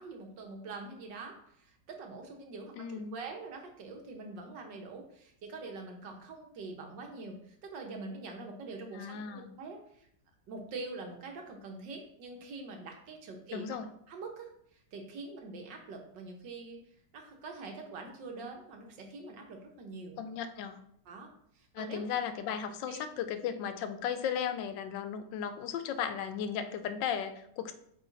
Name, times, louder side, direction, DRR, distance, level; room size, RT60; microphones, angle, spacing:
voice 1, 0.0-10.1 10.5-13.7 14.1-16.8 17.1-20.2 21.1-22.0 22.9-23.0, right 3 dB, 80° right, 2 dB, 1.7 m, -44 dB
voice 2, 2.8-3.2 8.9-9.5 13.5-13.9 20.2-20.8 21.7-27.7, left 8 dB, 90° left, 9 dB, 1.3 m, -36 dB
8.2 x 3.1 x 3.9 m, 0.70 s
omnidirectional pair, 1.9 m